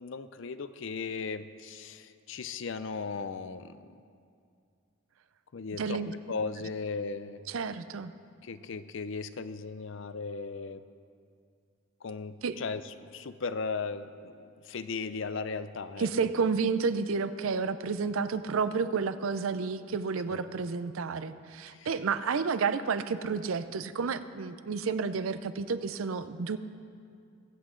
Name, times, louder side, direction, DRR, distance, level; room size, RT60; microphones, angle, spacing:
voice 1, 0.0-3.8 5.5-6.0 6.3-7.4 8.4-10.8 12.0-16.1 20.3-20.4 21.7-21.9, left 4 dB, 60° left, 12 dB, 0.5 m, -37 dB
voice 2, 5.8-6.1 7.5-8.1 12.4-12.6 16.0-26.6, right 5 dB, 75° right, 12 dB, 0.5 m, -31 dB
22.5 x 8.2 x 3.8 m, 2.3 s
head